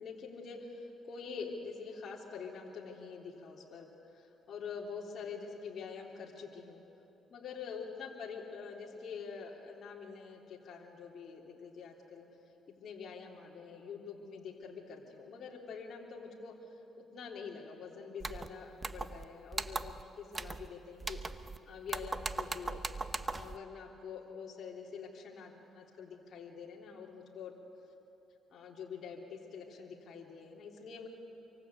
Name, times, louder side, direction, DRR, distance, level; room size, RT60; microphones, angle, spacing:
voice 1, 0.0-3.9 4.1-6.8 7.3-12.3 12.8-16.6 17.0-22.8 23.2-27.5 28.5-31.1, left 5 dB, 60° left, -3 dB, 3.4 m, -46 dB
sound 1, 18.2-18.5 18.8-19.2 19.5-20.0 20.3-20.7 21.0-21.6 21.9-23.6, right 3 dB, 25° right, 0.9 m, -39 dB
26.5 x 24.0 x 8.4 m, 3.0 s
cardioid pair, 90°, 0 cm